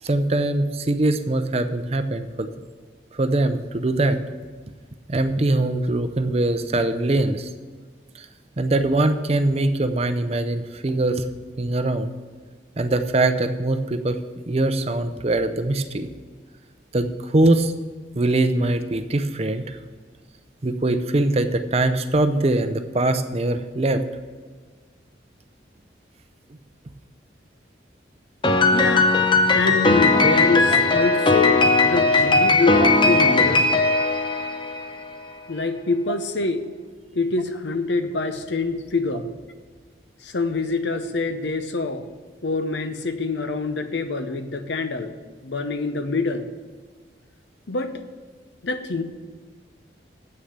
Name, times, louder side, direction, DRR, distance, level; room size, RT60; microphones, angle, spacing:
voice 1, 0.0-2.5 3.1-4.2 5.1-7.5 8.1-8.3 8.6-11.3 11.6-12.1 12.8-14.2 14.5-16.1 16.9-17.7 18.1-19.8 20.6-24.0, right 2 dB, 35° right, 9 dB, 0.5 m, -22 dB
Piano, 28.4-35.0, left 3 dB, 25° left, 0.6 m, -18 dB
voice 2, 28.7-29.1 29.5-33.7 35.5-36.6 37.1-39.3 40.2-42.1 42.4-45.1 45.4-46.5 47.7-48.0 48.6-49.0, left 3 dB, 75° left, 9 dB, 0.8 m, -25 dB
8.0 x 6.5 x 8.0 m, 1.5 s
head